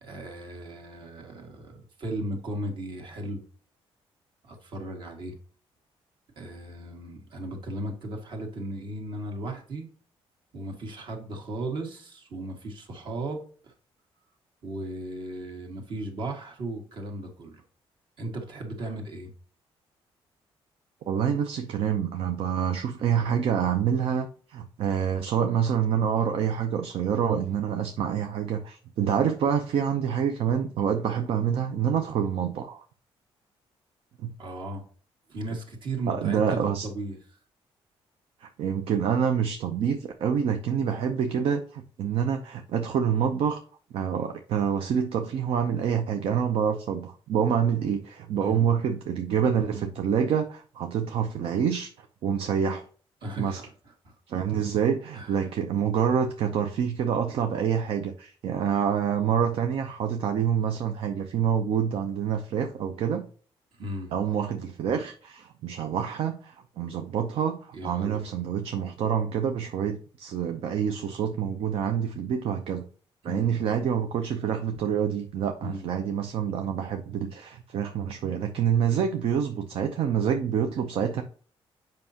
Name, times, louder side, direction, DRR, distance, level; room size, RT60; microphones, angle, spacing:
voice 1, 0.0-3.4 4.4-5.4 6.4-9.9 10.5-13.7 14.6-17.6 18.2-19.3 34.4-34.8 35.3-37.2 48.4-48.7 53.2-54.2 55.1-55.5 63.7-64.2 67.7-68.2 73.2-73.6 75.6-75.9, right 1 dB, 55° right, 3 dB, 1.9 m, -36 dB
voice 2, 21.1-32.8 34.2-34.3 36.1-36.9 38.4-43.6 43.9-52.9 53.4-53.6 54.3-63.3 64.1-72.8 73.2-81.2, right 8 dB, 70° right, 6 dB, 0.7 m, -27 dB
7.7 x 5.3 x 2.9 m, 0.42 s
cardioid pair, 150°, 10 cm